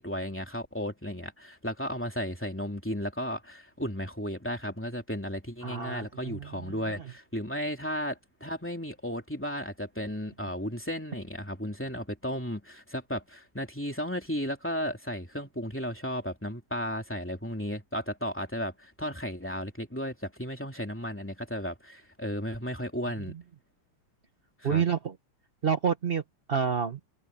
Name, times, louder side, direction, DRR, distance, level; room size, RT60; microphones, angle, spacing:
voice 1, 0.0-23.4 24.6-24.8, equal, 5° left, 2.7 m, -34 dB
voice 2, 5.6-6.7 24.6-25.1 25.6-26.2 26.5-27.0, right 7 dB, 60° right, 0.6 m, -28 dB
omnidirectional pair, 2.4 m